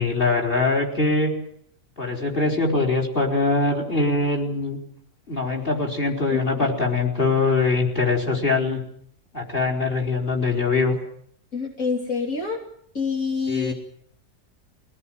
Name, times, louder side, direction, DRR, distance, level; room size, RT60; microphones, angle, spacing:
voice 1, 0.0-1.4 2.0-4.8 5.3-8.8 9.3-10.9 13.5-13.7, left 3 dB, 35° left, 3 dB, 4.8 m, -22 dB
voice 2, 6.3-6.7 11.5-12.6 13.0-13.7, left 5 dB, 60° left, -1 dB, 3.6 m, -27 dB
22.5 x 18.5 x 9.3 m, 0.66 s
omnidirectional pair, 1.7 m